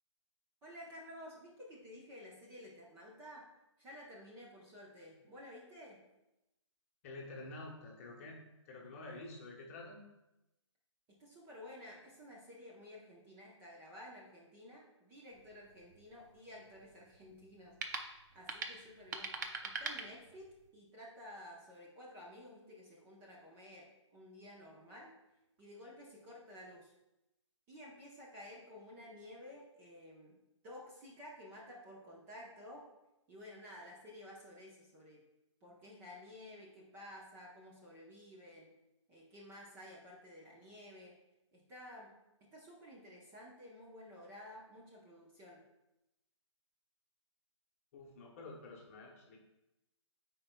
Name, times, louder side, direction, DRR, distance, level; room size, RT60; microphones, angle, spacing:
voice 1, 0.6-3.4 3.8-6.0 11.1-19.3 19.6-25.1 25.6-26.9 27.7-30.4 30.6-32.9 33.3-35.2 35.6-38.7 39.1-41.1 41.5-42.1 42.4-45.6, left 1 dB, 15° right, -4 dB, 0.9 m, -53 dB
voice 2, 7.0-8.4 8.6-10.0 47.9-49.4, left 2 dB, 30° left, -1 dB, 1.1 m, -49 dB
sound 1, 15.3-20.7, right 4 dB, 35° right, 0.6 m, -45 dB
13.0 x 4.6 x 2.3 m, 0.93 s
hypercardioid pair, 155°, 16 cm